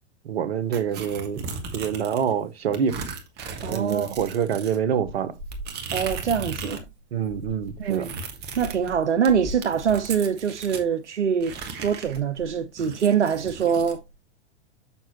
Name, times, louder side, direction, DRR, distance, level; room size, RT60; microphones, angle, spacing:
voice 1, 0.2-3.1 3.7-5.3 7.1-8.1, right 8 dB, 65° right, 1.1 m, -26 dB
sound 1, 0.7-2.3 2.7-6.9 7.2-10.9 11.4-14.0, right 4 dB, 30° right, 1.5 m, -36 dB
voice 2, 3.6-4.2 5.9-6.8 7.8-8.2 8.6-11.5 11.8-14.0, right 7 dB, 85° right, 0.6 m, -24 dB
7.0 x 5.9 x 2.9 m
figure-of-eight pair, 110°, 34 cm